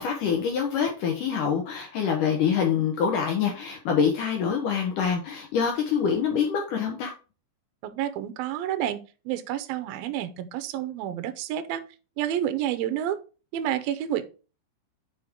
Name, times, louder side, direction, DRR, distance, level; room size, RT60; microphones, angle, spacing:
voice 1, 0.0-7.1, left 7 dB, 75° left, 2 dB, 2.0 m, -25 dB
voice 2, 7.8-11.8 12.2-13.2 13.5-14.3, right 11 dB, 85° right, 10 dB, 2.1 m, -29 dB
8.1 x 5.2 x 3.6 m, 0.34 s
omnidirectional pair, 5.2 m